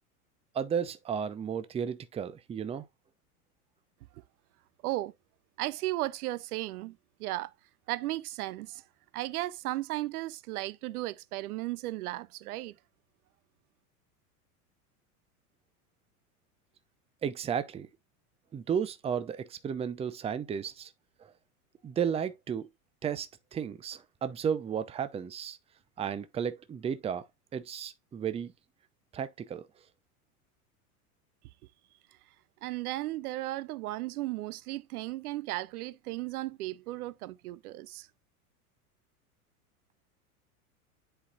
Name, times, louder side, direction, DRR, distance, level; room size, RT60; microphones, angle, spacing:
voice 1, 0.5-2.9 17.2-17.9 18.5-20.9 21.2-21.3 21.8-22.7 23.0-25.6 26.0-27.3 27.5-28.5 29.1-29.7, right 7 dB, 15° right, 0.5 m, -33 dB
voice 2, 5.6-6.9 7.2-7.5 7.9-8.8 9.1-12.7 32.6-38.1, right 17 dB, 75° right, 0.5 m, -35 dB
10.5 x 4.0 x 2.3 m
hypercardioid pair, 100°, 45 cm